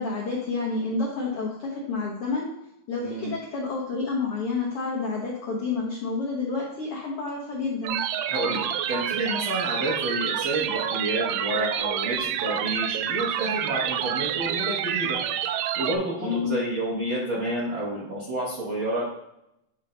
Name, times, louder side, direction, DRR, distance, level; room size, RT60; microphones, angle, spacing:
voice 1, 0.0-2.5 2.9-8.0 16.2-16.6, left 4 dB, 70° left, -4 dB, 1.4 m, -29 dB
voice 2, 3.0-3.3 8.3-15.2 15.4-19.0, right 1 dB, 60° right, -6 dB, 1.3 m, -30 dB
sound 1, 7.8-16.0, right 9 dB, 85° right, 2.1 m, -28 dB
8.8 x 3.7 x 3.8 m, 0.82 s
omnidirectional pair, 3.9 m